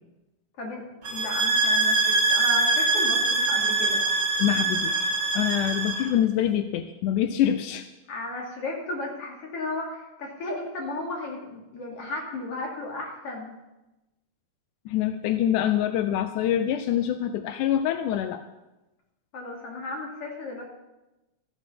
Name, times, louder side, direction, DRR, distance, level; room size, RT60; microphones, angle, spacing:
voice 1, 0.6-4.0 8.1-13.5 19.3-20.6, left 2 dB, 50° left, -1 dB, 3.5 m, -34 dB
sound 1, 1.0-6.1, right 3 dB, 55° right, 0.7 m, -23 dB
voice 2, 4.4-7.9 14.9-18.4, left 11 dB, 85° left, 9 dB, 2.1 m, -25 dB
14.0 x 9.6 x 5.7 m, 1.0 s
omnidirectional pair, 3.5 m